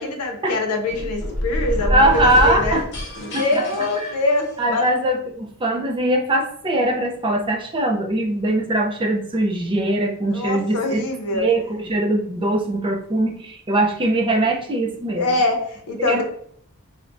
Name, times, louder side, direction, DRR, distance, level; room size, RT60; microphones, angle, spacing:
voice 1, 0.0-2.8 3.2-4.9 10.3-11.5 15.2-16.2, left 2 dB, 85° left, 3 dB, 0.6 m, -24 dB
sound 1, 0.8-4.9, equal, 55° left, 0.7 m, -27 dB
voice 2, 1.9-2.8 3.3-3.6 4.0-4.1 4.6-11.0 11.3-11.6 11.9-15.3 16.0-16.2, right 1 dB, 20° right, 1 dB, 0.5 m, -21 dB
4.5 x 2.1 x 2.5 m, 0.64 s
head